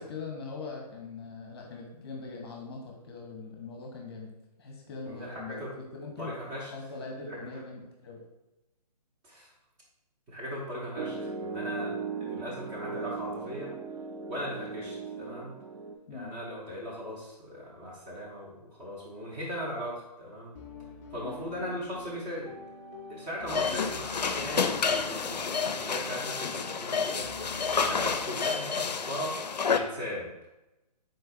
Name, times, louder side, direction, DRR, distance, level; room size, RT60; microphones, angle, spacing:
voice 1, 0.0-4.3 4.6-6.3 6.7-8.2 16.1-16.3 21.2-21.4 23.6-23.8, left 4 dB, 40° left, 0 dB, 0.9 m, -41 dB
voice 2, 5.1-5.7 6.2-6.7 7.3-7.5 9.2-9.5 10.3-13.7 14.3-15.5 16.1-20.5 21.1-22.5 23.1-27.3 27.7-30.3, equal, 20° right, -5 dB, 0.9 m, -38 dB
Piano, 11.0-16.0, right 4 dB, 60° right, 0.5 m, -37 dB
sound 1, 20.5-28.2, left 2 dB, 10° left, 0.3 m, -47 dB
sound 2, 23.5-29.8, left 5 dB, 80° left, 0.4 m, -30 dB
4.4 x 3.9 x 2.5 m, 0.94 s
figure-of-eight pair, 140°, 21 cm